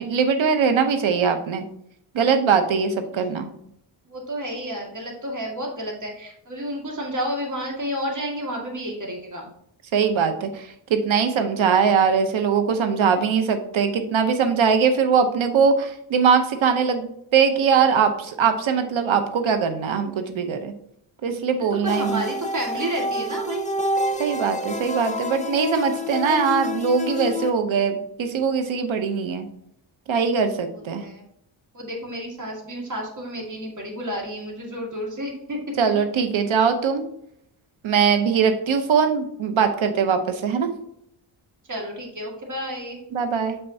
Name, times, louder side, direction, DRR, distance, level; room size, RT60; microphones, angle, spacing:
voice 1, 0.0-1.6 2.1-3.5 9.9-20.7 21.2-22.2 24.2-29.5 30.1-31.0 35.8-37.0 37.8-40.7 43.1-43.6, right 6 dB, 70° right, 8 dB, 0.9 m, -21 dB
voice 2, 4.1-9.5 21.7-23.6 30.7-31.3 31.7-35.9 41.7-43.0, equal, 35° right, 0 dB, 1.9 m, -31 dB
sound 1, 21.9-27.5, left 2 dB, 15° left, 0.5 m, -28 dB
6.7 x 5.5 x 2.7 m, 0.73 s
cardioid pair, 90°, 49 cm